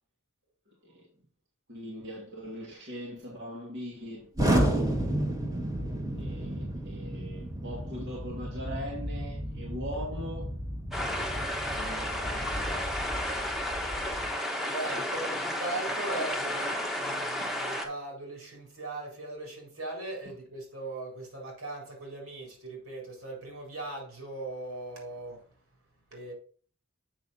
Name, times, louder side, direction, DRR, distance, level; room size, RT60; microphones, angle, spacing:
voice 1, 1.7-4.9 6.2-10.5 11.0-12.9, equal, 55° right, 2.2 m, -41 dB
Explosion, 4.4-14.3, right 1 dB, 15° right, 1.7 m, -32 dB
sound 1, 10.9-17.8, left 1 dB, ahead, 1.2 m, -32 dB
voice 2, 14.7-25.4 26.1-26.3, right 2 dB, 75° right, 4.0 m, -39 dB
7.6 x 6.5 x 4.2 m
head